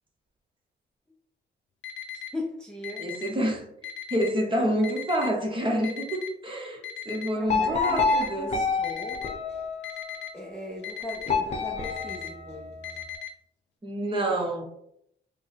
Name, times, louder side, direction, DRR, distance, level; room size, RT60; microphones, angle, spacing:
Alarm, 1.8-2.3 2.8-3.3 3.8-4.3 4.8-5.3 5.8-6.3 6.8-7.3 7.8-8.3 8.8-9.3 9.8-10.3 10.8-11.3 11.8-12.3 12.8-13.3, left 11 dB, 70° left, 0.7 m, -37 dB
voice 1, 2.1-3.1 7.3-9.2 10.3-12.7, left 1 dB, 5° left, -3 dB, 0.6 m, -38 dB
voice 2, 3.0-3.7 4.1-8.5 13.8-14.6, right 1 dB, 25° right, 0 dB, 1.1 m, -28 dB
sound 1, 7.5-10.2 11.3-13.0, left 4 dB, 35° left, 0.9 m, -28 dB
5.0 x 2.2 x 3.4 m, 0.75 s
cardioid pair, 105°, 20 cm